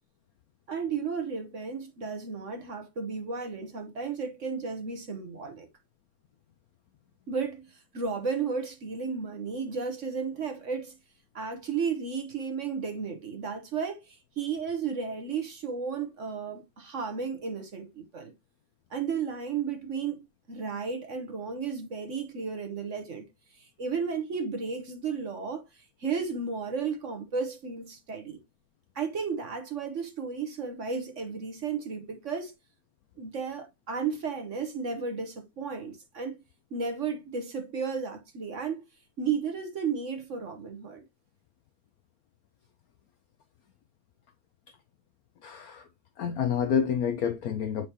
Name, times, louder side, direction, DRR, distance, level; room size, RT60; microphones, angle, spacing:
voice 1, 0.7-5.7 7.3-11.0 11.3-18.3 18.9-23.2 23.5-28.4 28.9-32.5 33.2-36.4 36.7-38.8 39.2-41.0, right 5 dB, 45° right, 1.3 m, -33 dB
voice 2, 45.4-45.9 46.2-47.9, left 7 dB, 75° left, 0.8 m, -28 dB
8.3 x 4.5 x 2.9 m
omnidirectional pair, 2.1 m